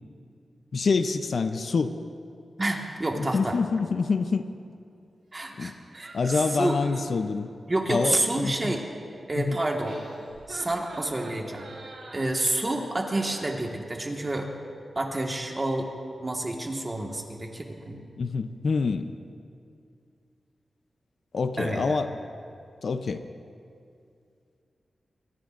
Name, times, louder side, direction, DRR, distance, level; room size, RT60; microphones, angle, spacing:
voice 1, 0.7-2.0 3.1-4.4 5.6-5.7 6.1-7.5 7.9-8.8 9.3-9.6 18.2-19.1 21.3-22.2 22.8-23.2, left 4 dB, 55° left, 9 dB, 0.6 m, -26 dB
voice 2, 2.6-3.6 5.3-6.8 7.7-8.8 9.3-9.9 10.5-11.7 12.1-14.5 14.9-15.9 16.2-18.0 21.6-22.0, right 2 dB, 25° right, 1 dB, 1.6 m, -29 dB
sound 1, 5.9-7.2 9.5-13.6, right 3 dB, 80° right, 3.9 m, -44 dB
25.0 x 19.0 x 2.6 m, 2.4 s
wide cardioid pair, 155°, 0 cm